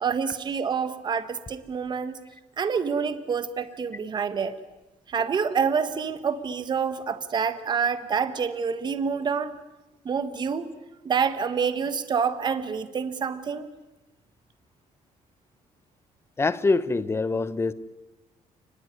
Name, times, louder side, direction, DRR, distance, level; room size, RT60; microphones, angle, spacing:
voice 1, 0.0-2.2 2.6-4.5 5.1-9.5 10.0-10.7 11.0-13.7, right 6 dB, 30° right, 11 dB, 1.4 m, -27 dB
voice 2, 16.4-17.7, left 3 dB, 20° left, 15 dB, 0.9 m, -24 dB
29.5 x 20.5 x 9.6 m, 1.1 s
cardioid pair, 160°, 14 cm